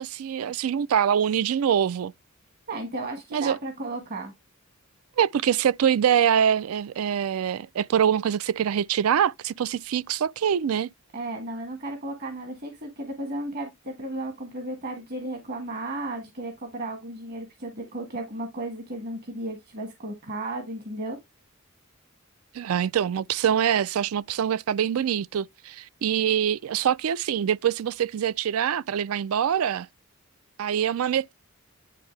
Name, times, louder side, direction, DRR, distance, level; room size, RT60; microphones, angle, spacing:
voice 1, 0.0-2.1 3.3-3.6 5.2-10.9 22.5-29.9 30.6-31.3, right 8 dB, 85° right, 0.4 m, -24 dB
voice 2, 2.7-4.3 11.1-21.2, right 2 dB, 50° right, 1.5 m, -34 dB
9.9 x 3.5 x 3.2 m
head